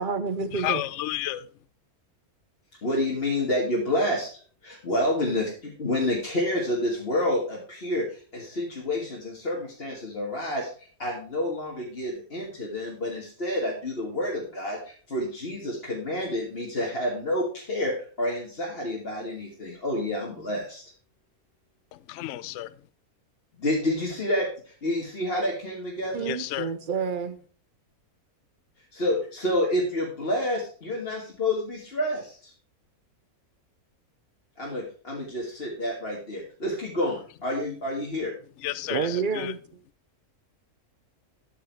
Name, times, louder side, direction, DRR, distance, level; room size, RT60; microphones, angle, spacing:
voice 1, 0.0-0.8 26.1-27.4 38.9-39.6, right 6 dB, 50° right, 0.6 m, -29 dB
voice 2, 0.5-1.5 21.9-22.7 26.2-26.7 38.6-39.5, left 14 dB, 65° left, 0.8 m, -31 dB
voice 3, 2.8-4.3 4.6-10.7 11.0-20.8 23.6-26.3 28.9-32.5 34.6-38.3, left 1 dB, 40° left, 1.9 m, -29 dB
12.5 x 5.0 x 4.5 m
omnidirectional pair, 1.6 m